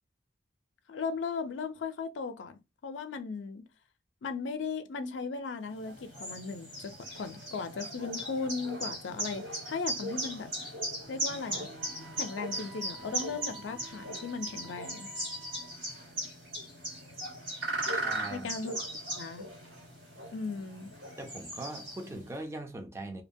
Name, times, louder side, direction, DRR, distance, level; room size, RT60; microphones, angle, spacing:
voice 1, 0.9-2.6 2.8-3.6 4.2-10.5 11.1-11.7 12.2-15.1 18.3-18.8 19.1-19.5 20.3-20.9, left 4 dB, 85° left, 0.4 m, -37 dB
sound 1, 5.8-22.3, right 1 dB, 85° right, 1.6 m, -38 dB
Wind instrument woodwind instrument, 11.8-15.9, right 8 dB, 55° right, 0.6 m, -53 dB
voice 2, 17.9-18.5 21.2-23.2, right 1 dB, 15° right, 0.5 m, -41 dB
2.7 x 2.2 x 2.6 m
head